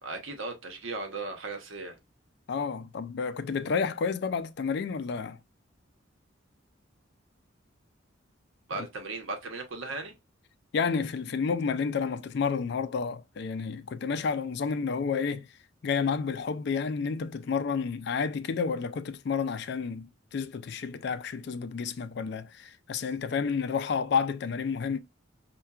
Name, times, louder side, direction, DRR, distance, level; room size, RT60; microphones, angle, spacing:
voice 1, 0.0-2.0 8.7-10.1, right 3 dB, 75° right, 0.8 m, -37 dB
voice 2, 2.5-5.4 8.8-8.9 10.7-15.5 15.8-25.0, left 5 dB, 55° left, 0.3 m, -30 dB
5.5 x 2.2 x 2.3 m
head